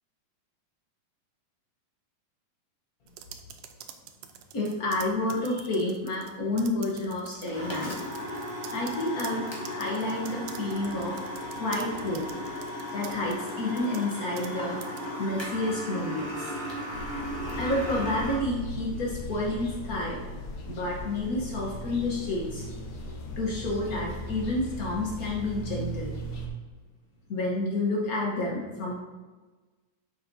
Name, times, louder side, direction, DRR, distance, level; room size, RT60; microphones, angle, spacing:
sound 1, 3.1-6.3 6.6-7.5 7.9-14.5 14.8-15.1, right 10 dB, 85° right, 2.1 m, -46 dB
voice 1, 4.5-7.9 8.7-11.2 11.5-12.2 12.9-14.8 15.2-16.5 17.6-20.2 20.7-22.6 23.4-26.1 27.3-28.9, left 2 dB, 85° left, -3 dB, 0.7 m, -30 dB
sound 2, 7.3-18.4, equal, 40° left, 0.4 m, -36 dB
sound 3, 16.9-26.5, equal, 60° left, 1.6 m, -38 dB
11.0 x 7.0 x 2.7 m, 1.3 s
omnidirectional pair, 3.4 m